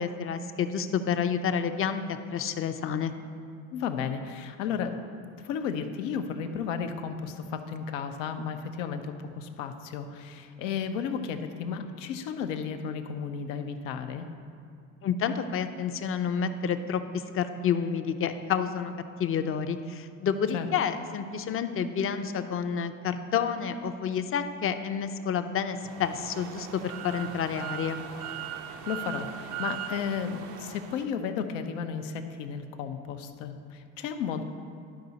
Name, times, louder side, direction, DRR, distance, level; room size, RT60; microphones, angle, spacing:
voice 1, 0.0-3.1 15.0-18.9 19.2-28.0, left 7 dB, 35° left, 9 dB, 0.6 m, -29 dB
voice 2, 3.7-5.0 5.4-14.3 20.5-20.7 28.7-34.4, left 7 dB, 85° left, 7 dB, 0.7 m, -33 dB
sound 1, 25.8-31.0, right 9 dB, 55° right, 0.6 m, -39 dB
11.5 x 4.8 x 4.0 m, 2.5 s
hypercardioid pair, 75°, 37 cm